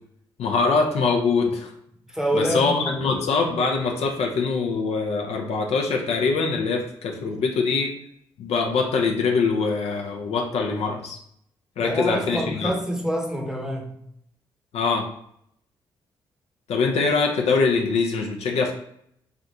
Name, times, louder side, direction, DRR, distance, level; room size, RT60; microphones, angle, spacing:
voice 1, 0.4-1.7 2.3-7.9 8.4-11.2 11.8-12.7 14.7-15.1 16.7-18.7, left 4 dB, 60° left, 0.5 m, -23 dB
voice 2, 2.1-3.2 11.8-13.9, right 1 dB, 5° right, 0.8 m, -26 dB
3.3 x 2.5 x 2.6 m
hypercardioid pair, 40°, 12 cm